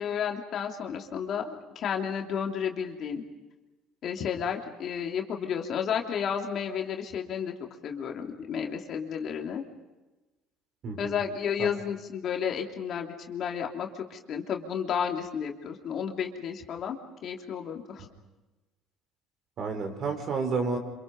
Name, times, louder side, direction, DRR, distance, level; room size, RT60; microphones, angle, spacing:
voice 1, 0.0-3.2 4.0-7.5 7.8-9.6 11.0-18.1, left 7 dB, 55° left, 2 dB, 3.2 m, -32 dB
voice 2, 10.8-11.2 11.6-11.7 19.6-20.8, right 4 dB, 55° right, 5 dB, 5.2 m, -30 dB
27.5 x 27.0 x 5.4 m, 1.1 s
supercardioid pair, 80°, 0 cm